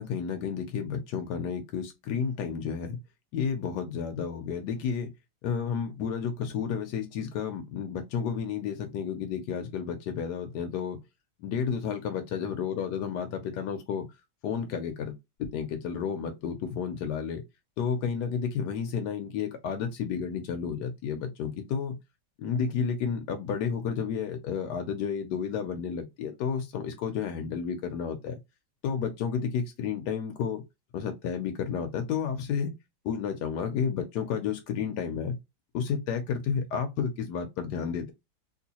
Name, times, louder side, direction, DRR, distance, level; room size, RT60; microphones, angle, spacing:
voice 1, 0.0-3.0 3.3-5.1 5.4-11.0 11.4-14.1 14.4-15.1 15.4-17.4 17.8-22.0 22.4-28.4 28.8-30.6 30.9-32.7 33.0-35.4 35.7-38.1, left 7 dB, 85° left, 1.2 m, -31 dB
3.8 x 2.4 x 2.8 m
omnidirectional pair, 1.8 m